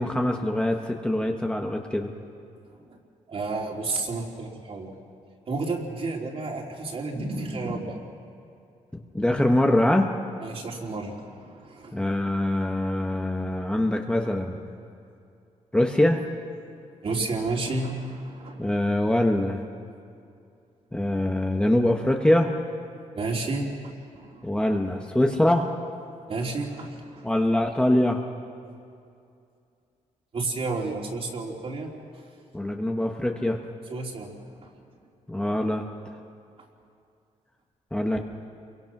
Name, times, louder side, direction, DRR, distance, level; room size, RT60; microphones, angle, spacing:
voice 1, 0.0-2.1 9.1-10.1 11.9-14.6 15.7-16.2 18.6-19.6 20.9-22.5 24.4-25.7 27.2-28.2 32.5-33.6 35.3-35.8 37.9-38.2, left 1 dB, 5° left, 2 dB, 1.3 m, -23 dB
voice 2, 3.3-4.9 5.5-8.0 10.4-12.0 17.0-18.6 23.1-24.5 26.3-27.3 30.3-31.9 33.9-34.3 34.6-34.7, right 3 dB, 45° right, 0 dB, 3.3 m, -31 dB
28.5 x 23.0 x 6.1 m, 2.5 s
cardioid pair, 125°, 13 cm